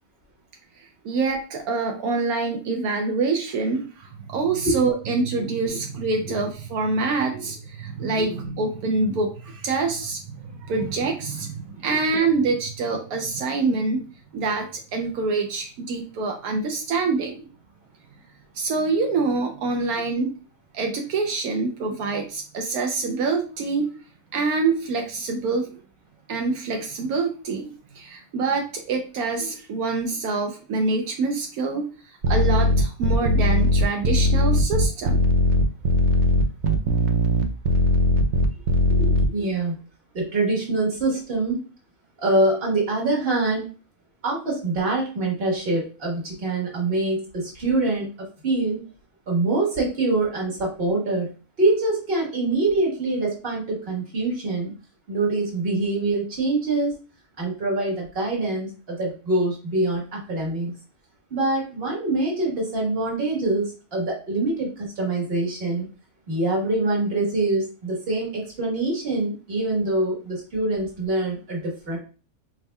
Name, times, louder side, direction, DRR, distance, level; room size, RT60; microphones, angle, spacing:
voice 1, 0.8-14.0 14.3-17.4 18.5-20.3 20.7-23.9 24.3-25.7 26.3-31.9 32.3-35.2, right 3 dB, 80° right, 4 dB, 1.1 m, -25 dB
sound 1, 32.2-39.2, left 1 dB, 65° right, 0.7 m, -19 dB
voice 2, 38.9-39.8 40.1-41.6 42.2-43.7 44.2-48.8 49.3-51.3 51.6-54.7 55.1-57.0 57.4-60.7 61.3-65.9 66.3-72.0, right 2 dB, 45° right, -2 dB, 1.5 m, -24 dB
4.2 x 3.5 x 2.2 m, 0.36 s
omnidirectional pair, 1.5 m